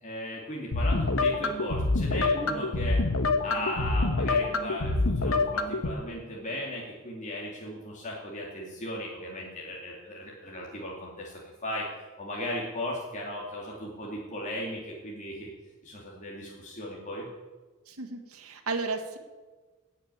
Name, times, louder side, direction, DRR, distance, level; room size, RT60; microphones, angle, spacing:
voice 1, 0.0-3.0 3.4-15.5 15.8-17.3, left 1 dB, 35° left, -3 dB, 2.4 m, -37 dB
sound 1, 0.7-5.9, left 2 dB, 65° left, 1.2 m, -26 dB
voice 2, 17.9-19.2, right 3 dB, 85° right, 4 dB, 1.7 m, -33 dB
17.5 x 6.7 x 9.4 m, 1.3 s
head